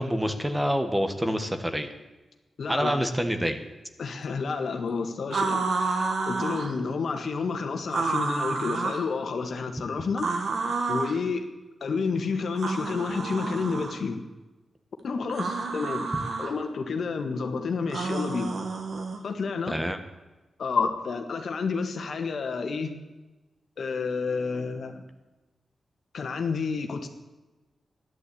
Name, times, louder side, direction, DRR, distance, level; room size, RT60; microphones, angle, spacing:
voice 1, 0.0-1.9 2.7-3.6 19.7-20.0, equal, 10° right, 7 dB, 1.4 m, -27 dB
voice 2, 2.6-3.0 4.0-10.4 10.9-11.5 11.8-14.2 15.0-16.1 16.4-18.5 19.2-19.8 20.6-22.9 23.8-25.0 26.1-27.1, left 4 dB, 70° left, 5 dB, 1.7 m, -30 dB
sound 1, 5.3-6.7 7.9-9.1 10.2-11.2 12.6-14.0 15.3-16.5 17.9-19.2, right 3 dB, 65° right, 2.1 m, -29 dB
13.0 x 11.0 x 8.6 m, 1.1 s
wide cardioid pair, 100°, 0 cm